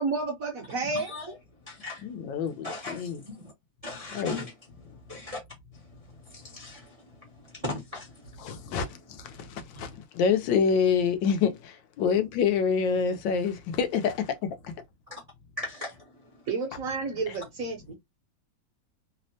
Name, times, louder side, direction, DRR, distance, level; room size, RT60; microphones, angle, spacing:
voice 1, 0.0-1.1 16.5-17.9, right 4 dB, 60° right, 1.0 m, -30 dB
voice 2, 0.8-1.4 1.6-2.2 2.6-3.5 3.8-4.5 4.8-5.4 5.7-8.8 9.3-9.5 9.7-9.9 15.1-15.2 15.6-16.5, left 2 dB, 35° right, 0.5 m, -40 dB
voice 3, 2.0-3.2 4.1-4.4 8.4-14.7, left 6 dB, 80° left, 1.3 m, -27 dB
3.4 x 2.0 x 2.6 m
omnidirectional pair, 2.1 m